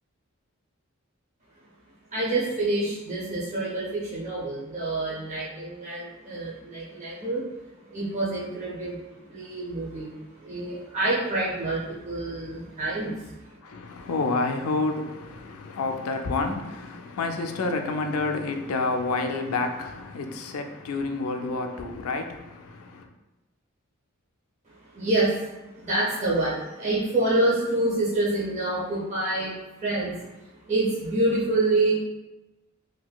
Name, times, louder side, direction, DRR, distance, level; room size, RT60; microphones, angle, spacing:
voice 1, 2.1-7.5 7.9-13.6 24.9-30.1 30.7-31.9, right 2 dB, 35° right, 0.6 m, -27 dB
voice 2, 13.6-23.1, left 3 dB, 90° left, 0.4 m, -29 dB
3.7 x 2.7 x 2.2 m
head